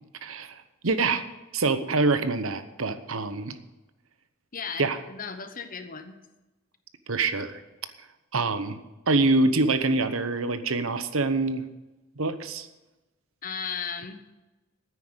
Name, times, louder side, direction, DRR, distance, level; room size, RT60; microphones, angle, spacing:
voice 1, 0.2-3.6 4.8-5.0 7.1-7.6 8.3-8.8 9.1-11.7 12.2-12.7, right 3 dB, 70° right, 11 dB, 1.0 m, -25 dB
voice 2, 4.5-6.2 13.4-14.2, left 6 dB, 40° left, 8 dB, 1.0 m, -35 dB
10.0 x 9.4 x 8.8 m, 1.1 s
head